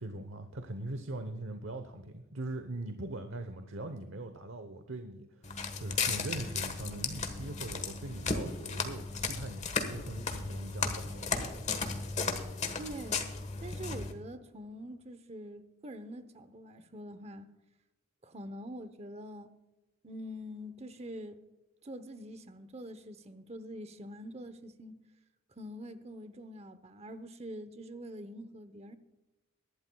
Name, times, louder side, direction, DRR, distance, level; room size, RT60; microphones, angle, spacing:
voice 1, 0.0-11.3, right 2 dB, 70° right, 0.9 m, -41 dB
Walk footsteps, 5.4-14.1, left 4 dB, 35° left, 1.3 m, -35 dB
voice 2, 12.8-13.3 13.6-17.5 18.2-19.5 20.0-21.4 21.8-25.0 25.6-29.0, equal, 30° right, 0.8 m, -45 dB
23.0 x 11.5 x 2.3 m
head